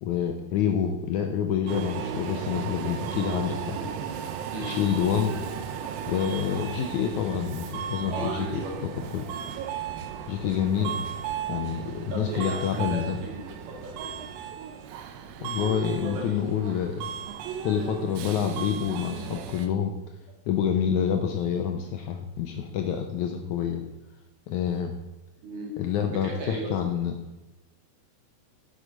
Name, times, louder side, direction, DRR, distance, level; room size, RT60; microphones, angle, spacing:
voice 1, 0.0-3.9 4.6-5.4 6.1-8.6 9.1-9.3 10.3-11.0 11.5-13.2 15.4-17.1 17.6-20.0 20.5-23.8 24.5-24.9 25.8-27.2, left 8 dB, 75° left, 4 dB, 1.9 m, -27 dB
Subway metro underground, 1.7-19.7, right 8 dB, 85° right, 2.5 m, -35 dB
voice 2, 8.1-8.8 12.1-14.3 16.0-16.6 25.4-26.7, right 1 dB, 70° right, -1 dB, 4.0 m, -37 dB
9.9 x 7.8 x 5.0 m, 0.98 s
omnidirectional pair, 4.1 m